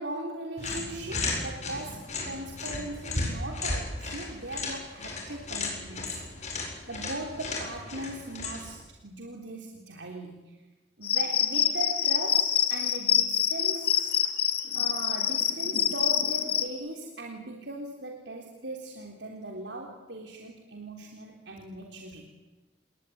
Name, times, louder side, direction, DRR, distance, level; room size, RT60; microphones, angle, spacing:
voice 1, 0.0-6.2 6.9-10.5 11.0-14.2 14.7-22.2, right 2 dB, 75° right, 1 dB, 3.6 m, -39 dB
sound 1, 0.6-8.8, left 3 dB, 40° left, 7.9 m, -35 dB
Cricket, 11.0-16.6, left 9 dB, 60° left, 2.4 m, -26 dB
28.0 x 21.5 x 9.9 m, 1.1 s
head